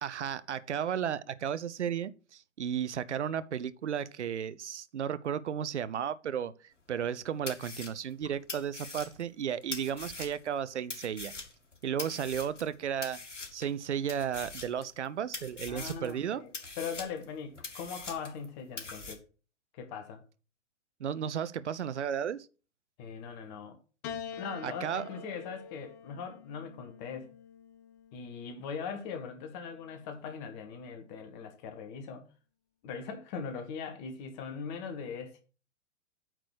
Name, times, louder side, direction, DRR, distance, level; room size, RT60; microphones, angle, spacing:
voice 1, 0.0-6.5 6.9-11.3 11.8-13.2 13.5-16.4 21.0-22.4 24.6-25.0, right 8 dB, 70° right, 0.7 m, -34 dB
sound 1, 7.0-7.1 7.5-10.5 10.9-12.7 13.0-13.7 14.1-15.1 15.3-16.1 16.5-18.5 18.8-19.1, left 3 dB, 80° left, 2.2 m, -42 dB
voice 2, 15.7-19.2 19.7-20.2 23.0-23.8 24.4-27.3 28.1-32.3 32.8-35.4, left 6 dB, 35° left, 1.6 m, -40 dB
Piano, 24.0-28.5 29.5-30.3, left 7 dB, 15° left, 0.3 m, -46 dB
9.0 x 4.1 x 6.3 m
figure-of-eight pair, 110°, 36 cm